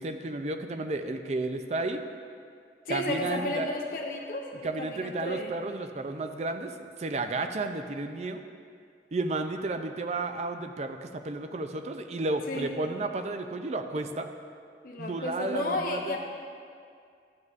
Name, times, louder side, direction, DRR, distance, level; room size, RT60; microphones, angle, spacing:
voice 1, 0.0-2.1 2.9-3.7 4.6-8.4 9.1-14.3 15.0-16.2, right 2 dB, 40° right, 7 dB, 0.4 m, -32 dB
voice 2, 2.8-4.5 4.8-5.5 12.5-12.7 14.8-16.2, left 1 dB, 50° left, 0 dB, 0.7 m, -32 dB
12.0 x 7.9 x 2.4 m, 2.2 s
head